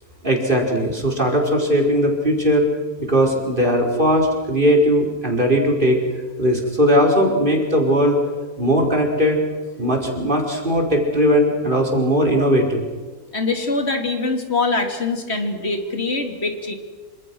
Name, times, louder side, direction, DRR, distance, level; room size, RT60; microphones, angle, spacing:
voice 1, 0.2-2.6 3.0-6.0 6.4-8.2 8.6-9.4 9.8-12.8, equal, 30° right, 0 dB, 5.2 m, -18 dB
voice 2, 13.3-16.8, left 3 dB, 40° left, 4 dB, 3.2 m, -23 dB
27.5 x 26.5 x 6.3 m, 1.4 s
omnidirectional pair, 1.7 m